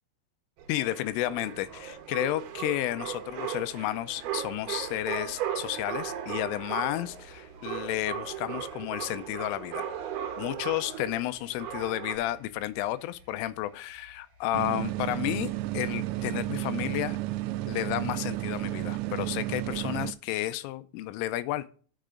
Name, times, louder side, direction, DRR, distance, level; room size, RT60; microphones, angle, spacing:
sound 1, 0.6-12.2, right 9 dB, 70° right, 2.6 m, -37 dB
voice 1, 0.7-9.9 10.4-17.2 17.7-21.7, left 15 dB, 85° left, 14 dB, 3.1 m, -32 dB
sound 2, 4.1-19.7, left 2 dB, 35° right, 2.2 m, -59 dB
sound 3, 14.5-20.1, right 18 dB, 85° right, 3.2 m, -32 dB
11.5 x 6.5 x 3.8 m, 0.41 s
omnidirectional pair, 5.8 m